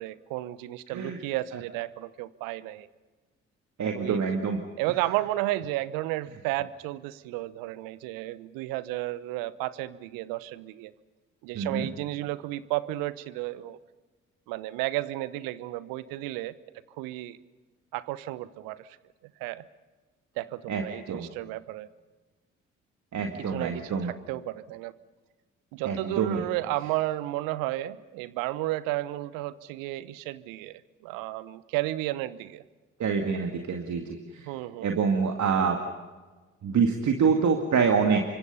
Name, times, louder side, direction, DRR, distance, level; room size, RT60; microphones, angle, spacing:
voice 1, 0.0-2.9 3.9-4.3 4.8-10.9 11.4-13.8 14.5-16.5 17.0-17.4 17.9-18.9 19.4-19.6 20.4-21.9 23.4-24.9 25.7-32.6 34.4-35.0, right 16 dB, 70° right, 18 dB, 1.0 m, -33 dB
voice 2, 3.8-4.6 11.6-11.9 20.7-20.8 21.1-21.3 23.1-24.1 25.9-26.5 33.0-34.5 34.8-35.8 36.6-38.2, right 6 dB, 50° right, 4 dB, 2.2 m, -26 dB
29.0 x 25.0 x 5.6 m, 1.3 s
figure-of-eight pair, 45°, 35 cm